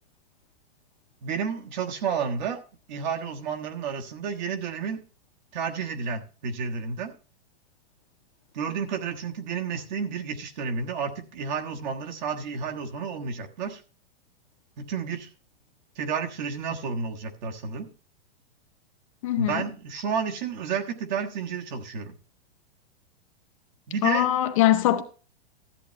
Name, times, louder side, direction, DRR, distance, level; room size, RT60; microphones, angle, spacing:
voice 1, 1.2-2.6 2.9-5.0 5.5-7.1 8.5-13.8 14.8-15.3 16.0-17.9 19.4-22.1 23.9-24.3, right 6 dB, 45° right, 1.4 m, -31 dB
voice 2, 19.2-19.6 24.0-25.0, left 13 dB, 30° left, 0.7 m, -22 dB
13.5 x 8.6 x 3.1 m
supercardioid pair, 170°, 32 cm